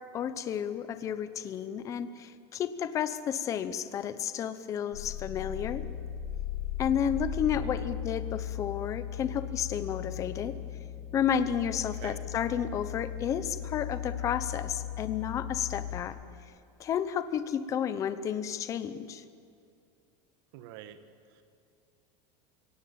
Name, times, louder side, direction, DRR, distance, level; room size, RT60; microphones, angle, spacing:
voice 1, 0.1-5.8 6.8-10.6 11.1-16.2 16.8-19.2, left 8 dB, 20° left, 12 dB, 0.9 m, -32 dB
sound 1, 4.9-16.0, left 9 dB, 85° left, 5.0 m, -37 dB
voice 2, 7.5-7.9 11.9-12.2 20.5-21.0 21.3-21.4, right 12 dB, 55° right, 10 dB, 1.6 m, -46 dB
30.0 x 18.0 x 8.8 m, 2.4 s
supercardioid pair, 180°, 14 cm